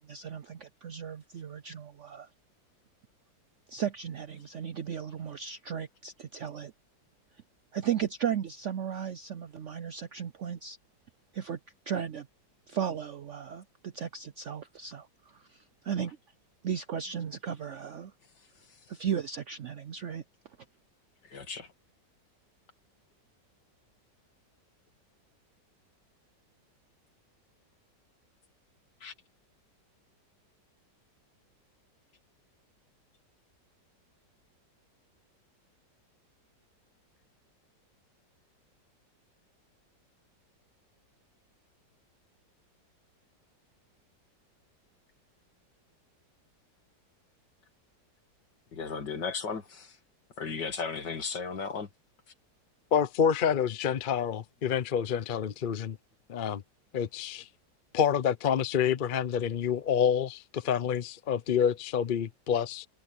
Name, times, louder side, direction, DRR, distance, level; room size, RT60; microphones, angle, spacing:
voice 1, 0.0-2.3 3.7-6.7 7.7-10.8 11.3-11.6 11.9-12.3 12.7-15.1 15.5-16.2 16.6-18.1 18.9-20.2, right 8 dB, 65° right, 0.7 m, -35 dB
voice 2, 21.3-21.7 29.0-29.1 48.7-50.0 50.4-51.9, left 5 dB, 75° left, 2.8 m, -35 dB
voice 3, 52.9-56.0 56.3-56.6 56.9-57.5 57.9-62.9, left 8 dB, 45° left, 0.6 m, -28 dB
omnidirectional pair, 1.9 m